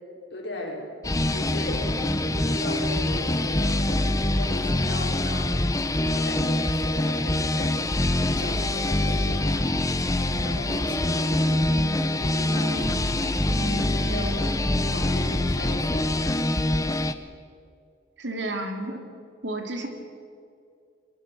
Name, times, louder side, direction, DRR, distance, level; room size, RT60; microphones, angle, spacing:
voice 1, 0.3-0.9 1.2-5.7 5.9-7.8 8.3-11.7 12.2-13.0 13.7-14.5 14.8-16.1, left 1 dB, 60° left, -1 dB, 5.7 m, -37 dB
sound 1, 1.0-17.1, left 1 dB, 15° left, 0.9 m, -25 dB
sound 2, 10.3-15.5, equal, 25° right, 2.8 m, -35 dB
voice 2, 18.2-19.0 19.4-19.9, right 1 dB, 65° right, 3 dB, 3.4 m, -31 dB
23.0 x 23.0 x 6.5 m, 2.3 s
head